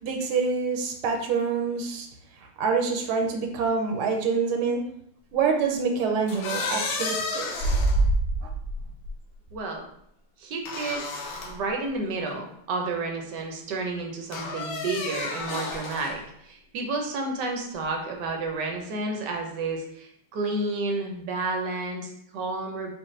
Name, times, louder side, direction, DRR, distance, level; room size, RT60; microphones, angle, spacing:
voice 1, 0.0-2.1 2.6-4.8 5.3-7.5 8.4-8.5, right 5 dB, 85° right, 2 dB, 1.6 m, -26 dB
sound 1, 6.3-9.1 10.7-11.6 12.3-12.4 14.3-16.2, equal, 75° left, 1.4 m, -28 dB
voice 2, 9.5-9.9 10.4-22.9, right 3 dB, 65° right, 2 dB, 1.1 m, -31 dB
4.7 x 2.5 x 3.2 m, 0.71 s
omnidirectional pair, 2.3 m